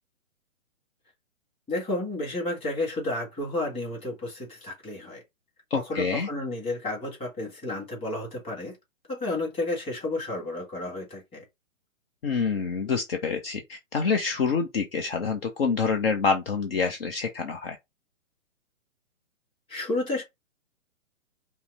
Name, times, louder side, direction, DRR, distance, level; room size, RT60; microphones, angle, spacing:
voice 1, 1.7-5.2 5.7-8.8 9.1-11.4 19.7-20.2, left 2 dB, 15° left, 2.0 m, -31 dB
voice 2, 5.7-6.3 12.2-17.8, left 5 dB, 45° left, 0.8 m, -27 dB
5.5 x 2.1 x 4.0 m
figure-of-eight pair, 125°, 40 cm